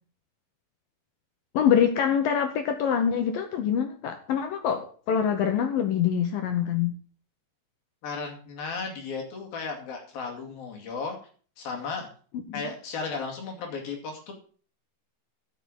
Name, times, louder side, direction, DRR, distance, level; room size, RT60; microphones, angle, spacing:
voice 1, 1.5-6.9 12.3-12.6, left 8 dB, 75° left, 6 dB, 2.2 m, -25 dB
voice 2, 8.0-11.2 11.6-12.1 12.5-14.3, left 4 dB, 60° left, 2 dB, 3.8 m, -35 dB
10.5 x 7.8 x 7.2 m, 0.43 s
omnidirectional pair, 5.2 m